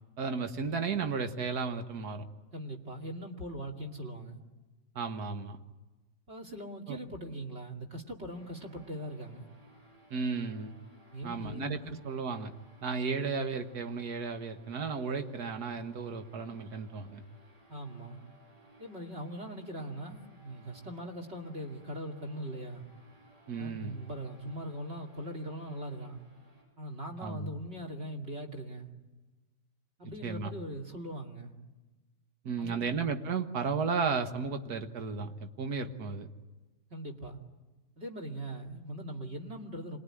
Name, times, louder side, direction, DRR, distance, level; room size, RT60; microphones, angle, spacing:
voice 1, 0.2-2.3 5.0-5.6 6.9-7.0 10.1-10.7 11.2-12.5 12.8-17.2 23.5-24.0 27.2-27.5 30.2-30.5 32.4-36.3, right 5 dB, 65° right, 7 dB, 1.9 m, -34 dB
voice 2, 2.5-4.4 6.3-9.5 11.1-12.0 17.7-18.2 18.8-22.8 23.6-26.2 26.8-28.9 30.0-31.5 32.6-32.9 36.9-37.4 38.0-40.0, right 1 dB, 40° right, 4 dB, 2.7 m, -41 dB
sound 1, 8.3-26.7, right 2 dB, 80° right, 8.2 m, -61 dB
26.5 x 20.5 x 9.9 m, 1.2 s
omnidirectional pair, 1.8 m